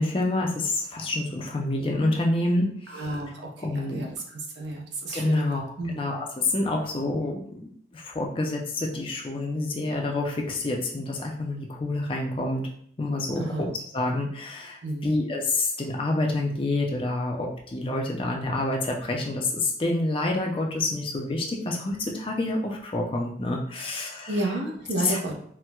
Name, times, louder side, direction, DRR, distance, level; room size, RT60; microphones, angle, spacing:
voice 1, 0.0-2.7 3.6-4.0 5.1-6.2 6.5-7.4 7.9-12.7 13.0-13.4 13.9-24.3 25.0-25.2, left 2 dB, 30° left, 0 dB, 0.4 m, -27 dB
voice 2, 2.9-6.1 13.4-13.7 14.8-15.1 23.7-23.9 24.3-25.4, right 1 dB, 75° right, 0 dB, 0.7 m, -32 dB
4.3 x 2.1 x 2.2 m, 0.62 s
head